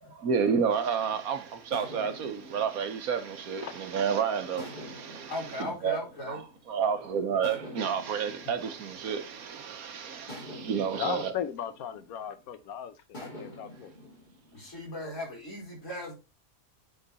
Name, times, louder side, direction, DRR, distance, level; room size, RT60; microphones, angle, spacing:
voice 1, 0.0-6.0 6.3-11.3, right 6 dB, 80° right, 1.5 m, -30 dB
sound 1, 0.8-1.1 1.7-4.0 4.6-6.8 7.4-9.6 10.3-12.5 13.1-14.7, left 1 dB, 30° left, 2.6 m, -47 dB
voice 2, 5.3-6.4 14.5-16.1, left 1 dB, 60° left, 4.4 m, -37 dB
voice 3, 10.9-13.9, left 9 dB, 85° left, 1.2 m, -37 dB
9.2 x 3.9 x 4.1 m
omnidirectional pair, 1.5 m